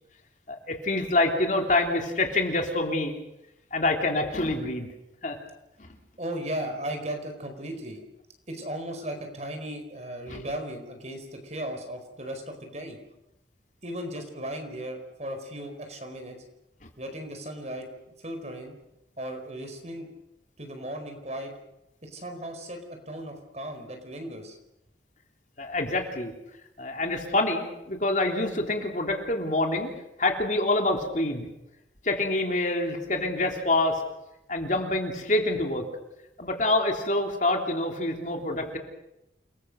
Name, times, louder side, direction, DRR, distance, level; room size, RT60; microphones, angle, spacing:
voice 1, 0.5-3.1 3.7-4.9 5.2-5.4 5.8-5.9 10.3-10.4 25.6-26.3 26.8-29.9 30.2-31.5 32.0-34.0 34.5-35.9 36.4-38.8, left 2 dB, 40° left, 3 dB, 3.6 m, -26 dB
voice 2, 6.2-8.0 8.5-13.0 13.8-16.4 17.0-18.7 19.2-20.1 20.6-21.5 22.0-24.6, right 1 dB, 35° right, 6 dB, 4.6 m, -36 dB
29.0 x 21.5 x 6.7 m, 0.89 s
head